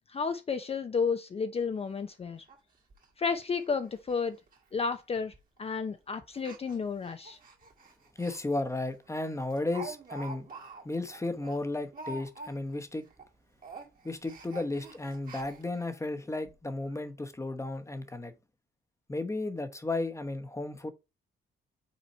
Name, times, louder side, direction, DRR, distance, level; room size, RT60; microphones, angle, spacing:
voice 1, 0.1-2.4 3.2-4.4 4.7-5.3 5.6-7.4, left 5 dB, 30° left, 0.5 m, -32 dB
Speech, 1.6-1.7 2.0-2.1 2.5-2.6 2.9-3.1 3.5-3.7 3.9-4.2 4.5-4.6 5.3-5.6 6.3-8.4 8.8-8.9 9.2-12.8 13.1-13.3 13.6-15.9 16.5-16.6 16.8-16.9, right 3 dB, 45° right, 1.8 m, -47 dB
voice 2, 8.2-10.5 10.8-13.0 14.0-18.3 19.1-20.9, left 2 dB, 15° left, 0.9 m, -34 dB
5.6 x 4.1 x 4.3 m
cardioid pair, 90°, 20 cm